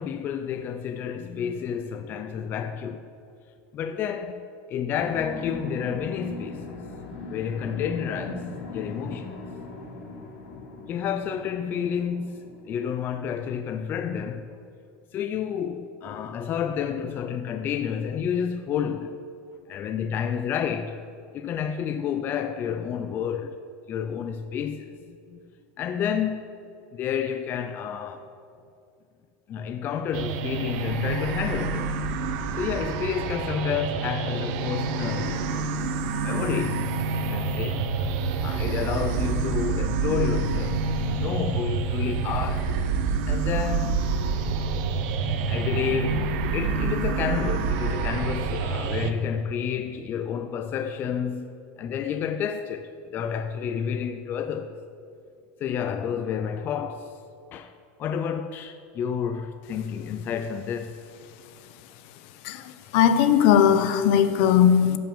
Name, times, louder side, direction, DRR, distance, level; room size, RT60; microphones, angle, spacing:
voice 1, 0.0-3.0 3.7-6.8 7.3-9.3 10.9-14.6 15.1-19.2 19.7-21.0 21.3-23.6 23.9-25.4 25.8-26.5 26.9-28.3 29.5-31.9 32.6-35.7 36.2-36.8 37.3-37.8 38.4-42.7 43.3-44.0 45.5-54.8 55.6-57.2 57.5-57.7 58.0-61.0, left 8 dB, 30° left, 0.4 m, -30 dB
sound 1, 4.9-13.1, left 3 dB, 85° left, 2.8 m, -39 dB
sound 2, 30.1-49.1, right 4 dB, 55° right, 0.8 m, -27 dB
voice 2, 62.9-65.0, left 9 dB, 60° left, 0.8 m, -18 dB
15.5 x 6.0 x 7.0 m
supercardioid pair, 160°, 7 cm